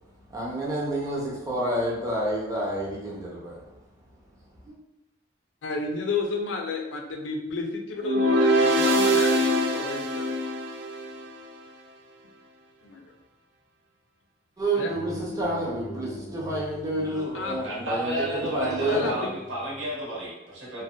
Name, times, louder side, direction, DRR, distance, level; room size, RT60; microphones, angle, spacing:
voice 1, 0.3-3.6 4.7-4.8 14.6-19.1, right 1 dB, 20° right, -4 dB, 0.5 m, -29 dB
voice 2, 5.6-10.4 12.8-13.0 14.8-14.9 17.3-17.6 18.8-19.2, left 3 dB, 90° left, 3 dB, 0.4 m, -32 dB
sound 1, 8.0-11.3, equal, 70° right, 0.3 m, -23 dB
sound 2, 14.9-19.9, left 1 dB, 30° left, 0.4 m, -42 dB
voice 3, 17.6-20.8, equal, 85° right, -5 dB, 0.9 m, -31 dB
2.7 x 2.1 x 2.2 m, 0.93 s
head